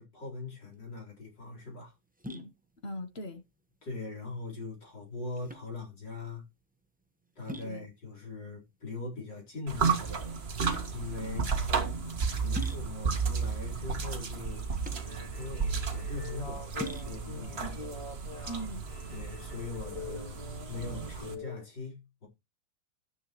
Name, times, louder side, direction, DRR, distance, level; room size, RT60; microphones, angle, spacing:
voice 1, 0.0-1.9 3.8-6.4 7.4-10.5 10.9-11.5 12.3-14.6 15.4-17.8 19.1-22.3, left 3 dB, 60° left, 4.7 m, -41 dB
sound 1, 0.6-19.2, equal, 10° right, 0.4 m, -47 dB
voice 2, 2.8-3.4 7.6-7.9 11.2-11.5 17.6-17.9 18.5-18.9, equal, 40° left, 1.0 m, -41 dB
sound 2, 9.7-21.4, right 5 dB, 35° right, 1.5 m, -33 dB
sound 3, 14.9-21.6, left 3 dB, 20° left, 3.0 m, -45 dB
12.5 x 10.0 x 3.0 m
omnidirectional pair, 2.2 m